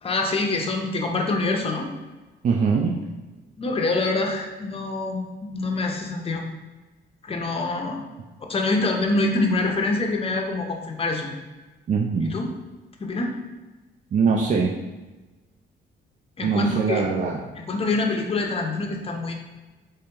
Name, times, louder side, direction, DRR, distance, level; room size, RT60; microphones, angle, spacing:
voice 1, 0.0-1.9 3.6-6.4 7.2-8.1 8.5-11.3 12.2-12.5 13.0-13.3 16.4-17.0 17.6-19.3, left 2 dB, 30° left, 2 dB, 0.6 m, -25 dB
voice 2, 2.4-3.0 11.9-12.4 14.1-14.8 16.4-17.5, right 5 dB, 40° right, -1 dB, 0.4 m, -22 dB
3.4 x 2.9 x 3.4 m, 1.2 s
cardioid pair, 90°, 20 cm